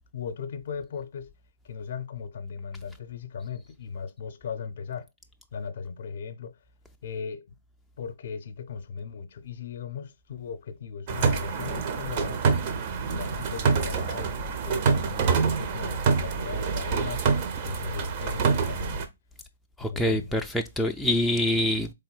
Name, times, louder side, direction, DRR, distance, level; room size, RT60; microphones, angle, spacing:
voice 1, 0.1-1.3 1.6-5.1 5.5-6.6 7.0-7.4 8.0-12.4 13.0-14.4 14.6-17.3 17.6-19.0 19.8-20.4, left 6 dB, 55° left, 0.6 m, -37 dB
sound 1, 11.1-19.0, right 5 dB, 40° right, 0.6 m, -26 dB
voice 2, 19.8-21.9, left 1 dB, 5° left, 0.3 m, -25 dB
4.1 x 3.4 x 2.2 m
figure-of-eight pair, 125°, 0 cm